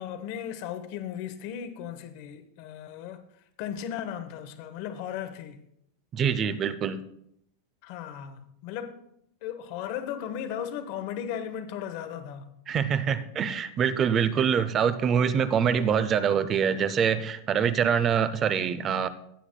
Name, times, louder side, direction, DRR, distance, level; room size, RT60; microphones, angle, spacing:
voice 1, 0.0-3.2 3.6-5.6 7.8-9.0 9.4-12.5, left 9 dB, 45° left, 0.9 m, -36 dB
voice 2, 6.1-7.0 12.7-19.1, right 7 dB, 20° right, 0.4 m, -25 dB
15.5 x 8.1 x 2.2 m
supercardioid pair, 170°, 0 cm